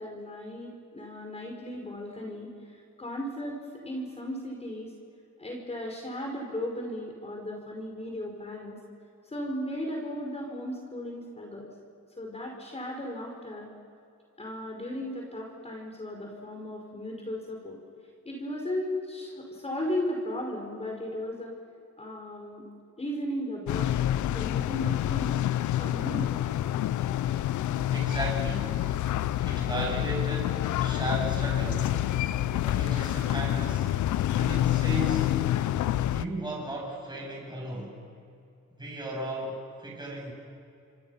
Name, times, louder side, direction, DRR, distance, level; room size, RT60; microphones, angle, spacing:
voice 1, 0.0-4.9 5.4-8.8 9.2-11.7 12.2-13.7 14.4-17.8 18.2-21.5 22.0-22.6 23.0-24.0 24.3-25.4 25.8-26.4, left 1 dB, 20° left, 0 dB, 5.0 m, -36 dB
sound 1, 23.7-36.3, left 12 dB, 75° left, 0.8 m, -27 dB
voice 2, 27.9-28.8 29.4-32.0 32.6-33.9 34.3-35.3 36.1-38.0 38.8-40.3, right 1 dB, 15° right, -3 dB, 7.9 m, -35 dB
28.0 x 26.5 x 5.8 m, 2.6 s
cardioid pair, 90°, 30 cm